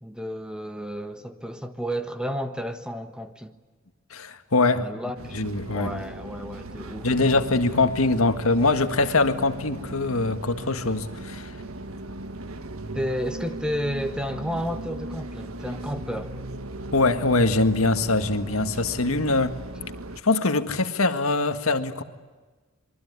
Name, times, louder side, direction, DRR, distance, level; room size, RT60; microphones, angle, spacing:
voice 1, 0.0-3.5 4.7-5.4 5.7-7.4 12.9-16.3, equal, 5° right, 1.4 m, -32 dB
voice 2, 4.1-4.9 5.3-5.9 7.0-11.5 16.9-19.6 20.2-22.0, left 3 dB, 85° left, 1.8 m, -23 dB
sound 1, 5.2-20.2, right 1 dB, 90° right, 1.5 m, -38 dB
26.5 x 23.5 x 9.6 m
head